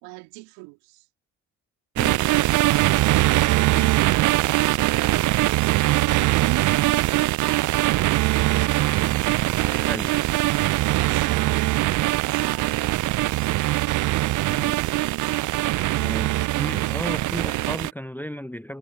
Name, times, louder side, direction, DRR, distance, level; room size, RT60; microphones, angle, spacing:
voice 1, 0.0-1.1 3.7-4.5 5.0-9.0 10.3-13.0 14.4-16.3, right 27 dB, 80° right, 2.4 m, -40 dB
sound 1, 2.0-17.9, right 17 dB, 50° right, 0.5 m, -22 dB
voice 2, 14.5-14.8 15.9-16.3 16.6-18.8, equal, 5° left, 0.6 m, -34 dB
hypercardioid pair, 45°, 41 cm